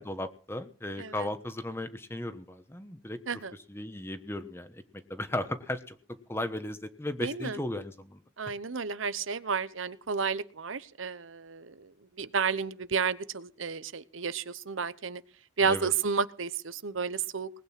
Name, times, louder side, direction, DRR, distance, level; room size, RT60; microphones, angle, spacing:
voice 1, 0.0-3.2 3.7-4.8 5.1-8.2 15.7-15.9, left 1 dB, 10° left, 10 dB, 1.1 m, -36 dB
voice 2, 1.0-1.3 3.3-3.6 7.2-7.6 8.4-11.9 12.2-15.2 15.6-17.5, right 5 dB, 85° right, 14 dB, 0.9 m, -31 dB
20.0 x 9.2 x 6.0 m, 0.41 s
head